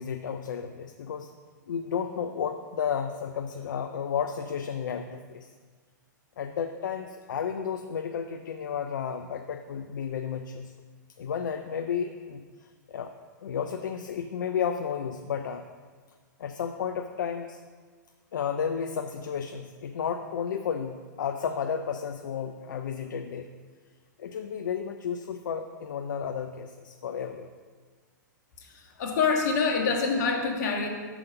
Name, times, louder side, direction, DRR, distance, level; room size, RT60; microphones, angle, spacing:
voice 1, 0.0-1.3 1.7-5.5 6.4-10.7 11.2-13.1 13.4-15.7 16.4-17.6 18.3-23.5 24.2-27.5, left 7 dB, 75° left, 7 dB, 0.4 m, -32 dB
voice 2, 28.6-30.9, left 5 dB, 60° left, 1 dB, 1.4 m, -26 dB
6.1 x 4.9 x 6.7 m, 1.5 s
hypercardioid pair, 115°, 10 cm